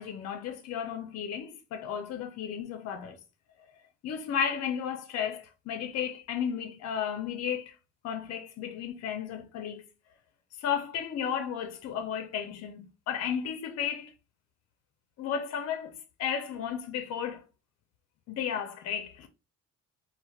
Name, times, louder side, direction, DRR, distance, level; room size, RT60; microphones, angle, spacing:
voice 1, 0.0-3.2 4.0-7.7 8.0-9.8 10.6-14.1 15.2-17.4 18.3-19.3, left 8 dB, 60° left, 0.4 m, -33 dB
2.6 x 2.1 x 2.3 m
cardioid pair, 90°, 30 cm